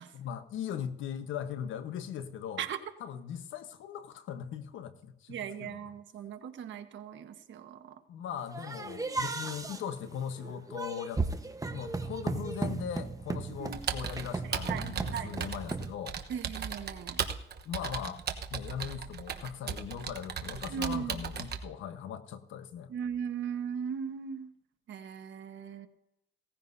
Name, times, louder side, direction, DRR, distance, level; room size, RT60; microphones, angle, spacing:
voice 1, 0.1-2.6 3.0-5.8 8.1-11.2 11.7-16.2 17.6-18.2 18.5-22.9, left 8 dB, 80° left, 10 dB, 1.1 m, -39 dB
voice 2, 5.3-8.0 13.6-14.1 14.5-15.4 16.3-17.2 20.7-21.2 22.9-24.5 24.9-25.9, right 8 dB, 70° right, 8 dB, 1.3 m, -38 dB
sound 1, 8.5-15.9, right 3 dB, 15° right, 1.1 m, -36 dB
Computer keyboard, 13.7-21.6, right 7 dB, 55° right, 1.1 m, -37 dB
17.5 x 14.5 x 2.7 m, 0.80 s
cardioid pair, 90°, 20 cm